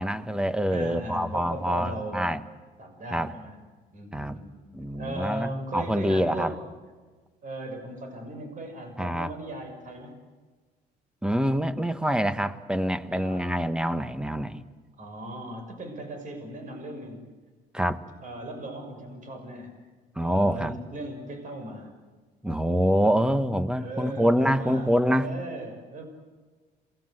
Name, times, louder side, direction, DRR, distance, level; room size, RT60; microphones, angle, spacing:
voice 1, 0.0-2.4 3.1-3.3 4.1-4.4 4.7-6.5 9.0-9.3 11.2-14.6 17.7-18.0 20.2-20.7 22.4-25.3, equal, 5° right, 11 dB, 1.4 m, -25 dB
voice 2, 0.7-2.3 2.8-3.6 3.9-4.5 4.9-6.6 7.4-10.2 13.1-13.5 15.0-17.2 18.0-19.7 20.2-21.9 23.8-24.9 25.2-26.1, right 1 dB, 50° right, 5 dB, 6.3 m, -37 dB
28.0 x 20.5 x 7.9 m, 1.4 s
cardioid pair, 110°, 17 cm